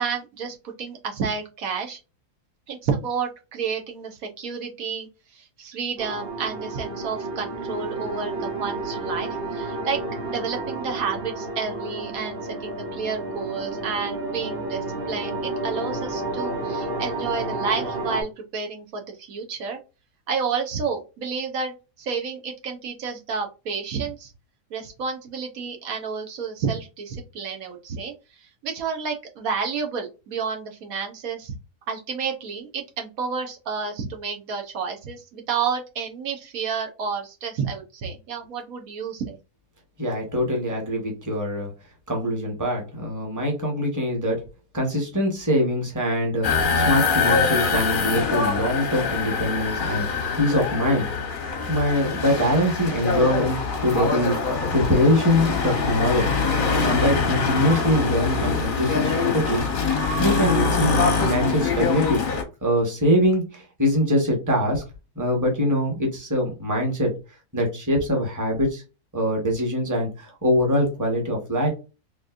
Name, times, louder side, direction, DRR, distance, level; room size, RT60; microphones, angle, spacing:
voice 1, 0.0-2.0 2.7-5.1 5.3-10.0 10.3-19.8 20.3-24.3 24.7-28.1 28.4-31.5 31.9-39.4, right 5 dB, 65° right, 3 dB, 1.3 m, -30 dB
sound 1, 6.0-18.2, right 2 dB, 45° right, 1.0 m, -31 dB
voice 2, 40.0-41.7 42.1-44.4 44.7-50.1 50.4-51.1 51.7-54.4 54.7-56.3 56.8-59.7 60.2-62.2 62.6-64.8 65.1-67.1 67.5-68.8 69.1-71.7, left 1 dB, 15° right, 0 dB, 1.1 m, -23 dB
sound 2, 46.4-62.4, left 4 dB, 45° left, 0.8 m, -24 dB
4.4 x 3.0 x 2.5 m, 0.30 s
omnidirectional pair, 1.6 m